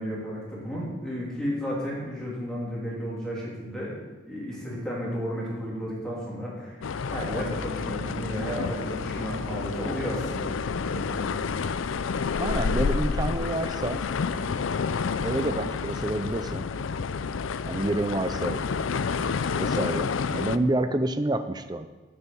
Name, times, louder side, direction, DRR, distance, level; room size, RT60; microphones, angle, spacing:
voice 1, 0.0-4.0 4.3-10.5 10.8-11.5, equal, 5° left, -6 dB, 3.1 m, -33 dB
sound 1, 6.8-20.6, left 5 dB, 85° left, 0.5 m, -29 dB
voice 2, 12.4-14.0 15.2-16.7 17.7-18.6 19.5-21.9, right 2 dB, 20° right, 10 dB, 0.4 m, -28 dB
9.0 x 6.8 x 8.5 m, 1.3 s
head